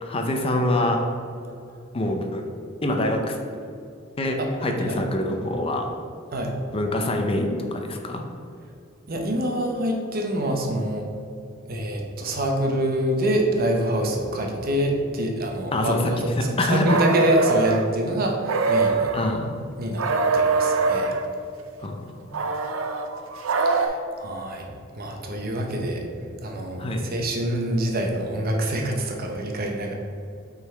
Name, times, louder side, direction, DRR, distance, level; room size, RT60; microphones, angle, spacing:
voice 1, 0.0-1.0 1.9-2.5 2.8-3.4 4.2-5.9 6.7-8.2 15.7-16.1 16.4-17.0 19.1-19.6 21.8-22.0 26.8-27.1, left 1 dB, 30° left, 3 dB, 0.5 m, -25 dB
voice 2, 9.1-11.1 11.7-19.2 19.8-20.0 20.3-21.1 23.6-24.7 25.0-26.0 26.4-29.9, right 1 dB, 50° right, 2 dB, 0.8 m, -26 dB
sound 1, 16.9-17.8 18.4-19.3 20.0-21.2 22.3-23.9, right 3 dB, 85° right, 0.5 m, -22 dB
5.7 x 4.0 x 4.4 m, 2.4 s
head